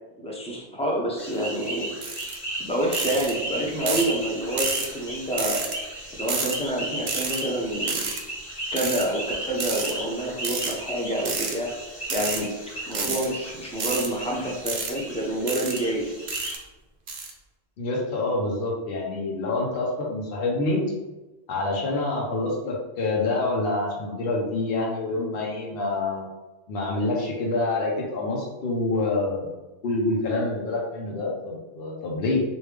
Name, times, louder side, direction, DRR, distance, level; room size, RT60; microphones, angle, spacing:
voice 1, 0.2-1.9 2.6-5.6 6.2-8.1 8.7-11.7 12.1-12.5 12.9-16.1, right 1 dB, 10° left, -3 dB, 0.4 m, -28 dB
sound 1, 1.2-16.6, right 1 dB, 35° left, 1.1 m, -35 dB
sound 2, 2.0-2.3 2.9-3.3 3.9-4.1 4.6-4.9 5.4-5.8 6.3-6.6 7.1-7.4 7.9-8.2 8.8-9.0 9.6-9.9 10.4-10.7 11.3-11.6 12.0-12.4 12.9-13.3 13.8-14.1 14.7-14.9 15.5-15.8 16.3-16.6 17.1-17.3, right 4 dB, 55° right, 0.5 m, -29 dB
voice 2, 17.8-20.8 21.5-26.2 26.7-29.5 29.8-32.4, left 2 dB, 60° left, -2 dB, 0.9 m, -27 dB
3.2 x 2.6 x 3.3 m, 1.1 s
omnidirectional pair, 1.1 m